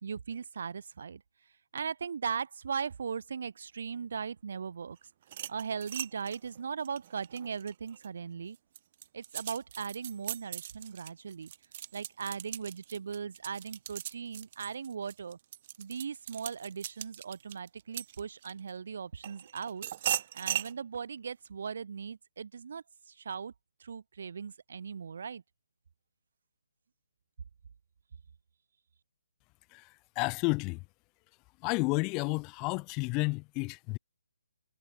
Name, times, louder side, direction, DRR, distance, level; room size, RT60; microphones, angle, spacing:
voice 1, 0.0-1.2 1.7-5.0 5.5-8.6 9.1-11.5 11.9-15.4 15.8-23.5 23.8-25.4, right 6 dB, 55° right, 0.9 m, -38 dB
sound 1, 5.2-8.1 8.5-18.7 19.2-20.7, right 12 dB, 35° right, 1.3 m, -39 dB
voice 2, 29.7-30.8 31.6-34.0, left 29 dB, 20° left, 0.3 m, -31 dB
figure-of-eight pair, 140°, 0 cm